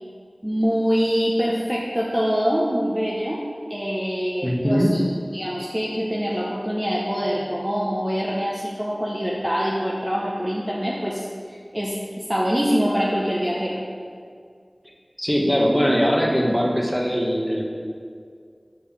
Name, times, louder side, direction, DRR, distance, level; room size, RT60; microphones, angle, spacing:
voice 1, 0.4-3.4 3.7-5.0 5.3-13.8, equal, 15° right, -4 dB, 0.8 m, -24 dB
voice 2, 4.4-4.9 15.2-17.6, equal, 5° left, -2 dB, 1.3 m, -21 dB
7.1 x 4.7 x 5.9 m, 2.2 s
wide cardioid pair, 50°, 0 cm